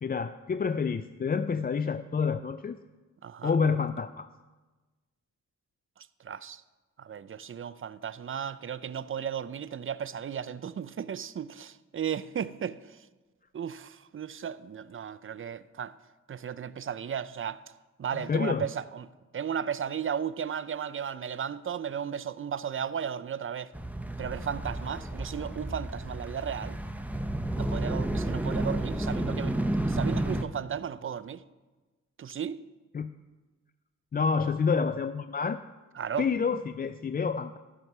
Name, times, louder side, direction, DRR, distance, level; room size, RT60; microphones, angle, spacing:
voice 1, 0.0-2.8 3.4-4.3 18.3-18.7 32.9-33.1 34.1-35.6 36.2-37.6, left 5 dB, 30° left, 0.4 m, -28 dB
voice 2, 3.2-3.6 6.0-6.6 7.0-13.1 13.5-15.9 16.3-17.6 18.0-19.1 19.3-23.7 24.2-26.8 27.6-29.6 29.9-31.4 32.2-32.6 36.0-36.3, right 8 dB, 45° right, 0.5 m, -35 dB
sound 1, 23.7-30.4, right 1 dB, 5° right, 0.8 m, -31 dB
13.5 x 6.0 x 5.5 m
cardioid pair, 70°, 31 cm